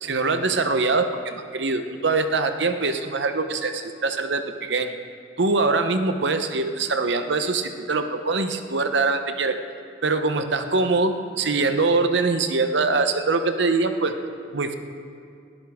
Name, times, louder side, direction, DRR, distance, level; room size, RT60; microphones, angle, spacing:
voice 1, 0.0-4.9 5.4-9.6 10.0-14.1 14.5-14.8, right 3 dB, 65° right, 8 dB, 0.8 m, -23 dB
20.0 x 13.5 x 3.6 m, 2.3 s
head